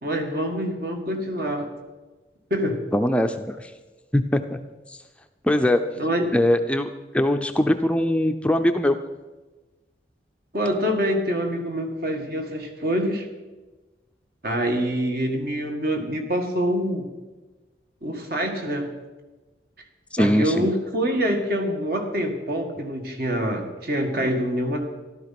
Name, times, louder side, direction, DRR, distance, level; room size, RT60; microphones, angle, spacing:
voice 1, 0.0-1.7 2.5-2.8 6.0-6.3 10.5-13.3 14.4-17.1 18.0-18.9 20.2-24.8, equal, 55° right, 4 dB, 2.0 m, -25 dB
voice 2, 2.9-3.7 4.1-4.6 4.9-5.0 5.4-5.8 6.3-6.9 7.1-9.0 20.1-20.7, left 1 dB, 5° left, 7 dB, 0.5 m, -21 dB
14.0 x 12.5 x 5.9 m, 1.2 s
head